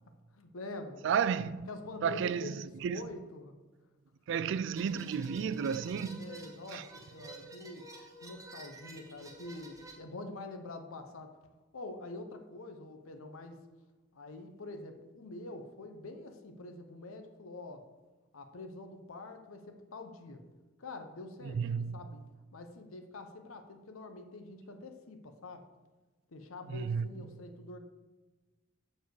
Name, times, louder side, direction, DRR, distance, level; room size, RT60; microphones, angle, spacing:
voice 1, 0.3-1.0 1.7-2.6 2.9-3.5 6.2-7.9 8.2-11.3 11.7-13.6 14.1-17.9 18.3-20.4 20.8-22.2 22.5-25.7 26.3-27.8, left 2 dB, 90° left, 0.8 m, -46 dB
voice 2, 1.0-1.7 2.0-3.1 4.3-6.3 6.7-6.8 21.4-22.0 26.7-27.1, right 7 dB, 60° right, 0.3 m, -32 dB
sound 1, 4.8-9.9, right 2 dB, 15° right, 0.9 m, -51 dB
7.1 x 4.3 x 6.4 m
head